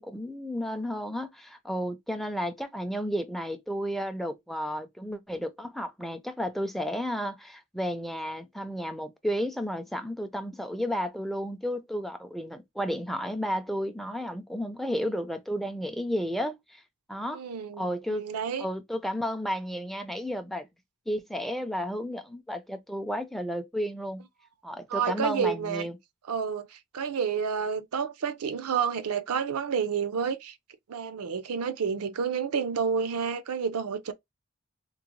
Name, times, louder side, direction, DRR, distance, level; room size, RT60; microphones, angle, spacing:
voice 1, 0.0-16.8 17.1-17.4 17.8-18.3 18.6-20.7 21.1-24.2 24.6-26.0, equal, ahead, 0.3 m, -32 dB
voice 2, 17.3-18.7 24.9-25.9 26.3-30.6 30.9-34.1, right 6 dB, 85° right, 0.5 m, -30 dB
3.8 x 2.0 x 3.0 m
head